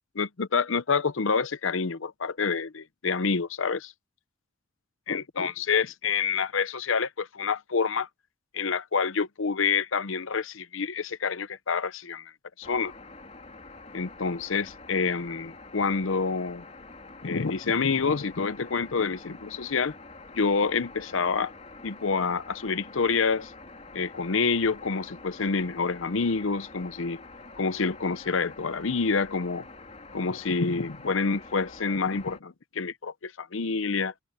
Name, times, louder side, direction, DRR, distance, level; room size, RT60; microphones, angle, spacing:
voice 1, 0.1-3.8 5.1-8.1 8.5-12.3 12.6-12.9 13.9-16.6 17.2-19.9 20.4-21.5 21.8-23.5 23.9-27.2 27.6-29.7 30.1-34.1, left 5 dB, 75° left, 0.8 m, -27 dB
sound 1, 12.6-32.4, left 3 dB, 35° left, 3.5 m, -47 dB
head